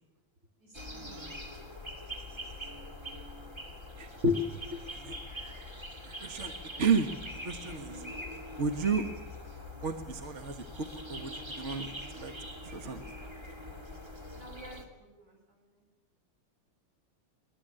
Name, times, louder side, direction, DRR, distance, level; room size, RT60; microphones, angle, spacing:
voice 1, 0.6-1.0 7.9-8.2 14.3-15.8, right 1 dB, 60° right, -1 dB, 8.9 m, -51 dB
sound 1, 0.7-14.8, left 1 dB, 10° right, 2.3 m, -43 dB
voice 2, 4.0-4.4 4.7-5.2 6.0-6.5 6.8-7.1 7.4-7.9 8.6-9.0 9.8-12.3 12.6-13.1, right 3 dB, 35° right, 7 dB, 1.5 m, -32 dB
23.5 x 20.5 x 9.0 m, 1.0 s
omnidirectional pair, 2.4 m